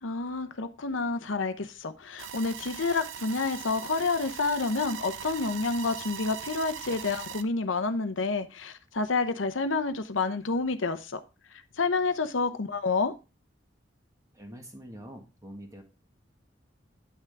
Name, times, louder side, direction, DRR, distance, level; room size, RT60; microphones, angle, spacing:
voice 1, 0.0-11.2 11.8-13.1, left 3 dB, 90° left, 0.9 m, -29 dB
sound 1, 2.2-7.4, right 7 dB, 80° right, 0.6 m, -40 dB
voice 2, 14.3-15.8, equal, 20° right, 1.6 m, -45 dB
9.5 x 5.9 x 3.5 m
head